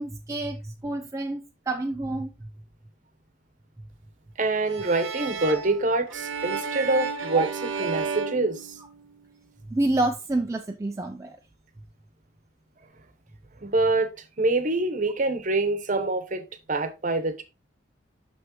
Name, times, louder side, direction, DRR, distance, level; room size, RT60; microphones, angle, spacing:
voice 1, 0.0-2.5 7.3-7.4 9.7-11.4 15.9-16.1, right 2 dB, 15° right, 0.4 m, -28 dB
voice 2, 4.4-7.5 7.8-8.7 13.6-14.1 14.4-17.4, right 2 dB, 40° right, 0.9 m, -25 dB
sound 1, 4.7-9.3, right 5 dB, 75° right, 0.9 m, -32 dB
6.1 x 5.9 x 3.0 m
head